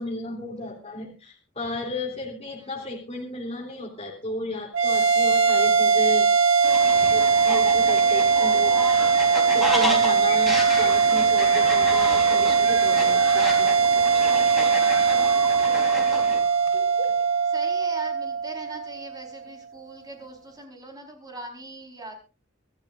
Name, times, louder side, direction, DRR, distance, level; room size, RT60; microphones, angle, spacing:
voice 1, 0.0-6.3 7.1-8.8 9.5-13.8 16.3-16.4, left 1 dB, 30° left, -1 dB, 3.2 m, -34 dB
sound 1, 4.7-19.3, right 5 dB, 80° right, 1.8 m, -20 dB
Fowl, 6.6-16.4, equal, ahead, 3.8 m, -32 dB
sound 2, 10.0-17.2, left 2 dB, 80° left, 4.7 m, -38 dB
voice 2, 16.0-16.6 17.4-22.1, right 2 dB, 20° right, 2 dB, 4.6 m, -41 dB
25.0 x 12.5 x 2.6 m, 0.31 s
head